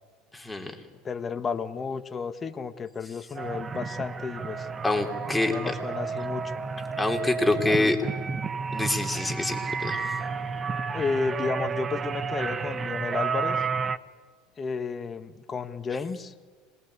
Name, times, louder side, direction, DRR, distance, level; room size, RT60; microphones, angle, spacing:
voice 1, 0.3-0.8 4.8-5.7 7.0-8.0 8.7-10.0, left 2 dB, 5° left, 2 dB, 3.8 m, -26 dB
voice 2, 1.0-4.7 5.5-6.4 7.7-7.9 10.9-13.6 14.6-16.3, left 5 dB, 30° left, 9 dB, 1.6 m, -32 dB
sound 1, 3.4-14.0, right 5 dB, 30° right, 1.0 m, -31 dB
26.0 x 20.5 x 8.4 m, 1.5 s
hypercardioid pair, 80°, 0 cm